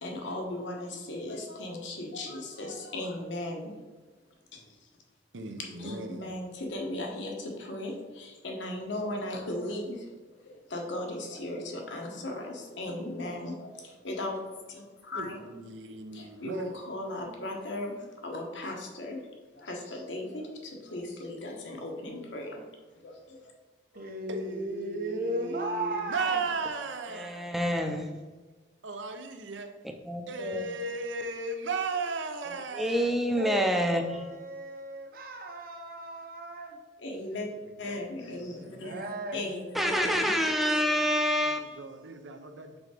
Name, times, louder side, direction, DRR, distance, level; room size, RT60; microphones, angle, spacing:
voice 1, 0.0-3.7 4.5-4.6 5.8-10.1 10.4-15.3 16.1-19.2 19.5-22.6 23.0-23.4 23.9-24.1 37.0-37.5 37.8-40.4, left 1 dB, 80° left, 0 dB, 1.2 m, -37 dB
voice 2, 5.3-6.4 15.1-16.9 24.3-27.6 28.8-29.8 30.3-33.3 37.4-38.8 41.5-42.8, right 3 dB, 85° right, 6 dB, 0.7 m, -36 dB
voice 3, 23.9-26.4 33.4-36.8 38.5-39.5, right 1 dB, 50° right, 4 dB, 0.8 m, -36 dB
voice 4, 27.2-28.1 30.1-30.6 32.8-34.0 39.7-41.8, equal, ahead, 3 dB, 0.5 m, -27 dB
4.9 x 3.9 x 4.9 m, 1.3 s
head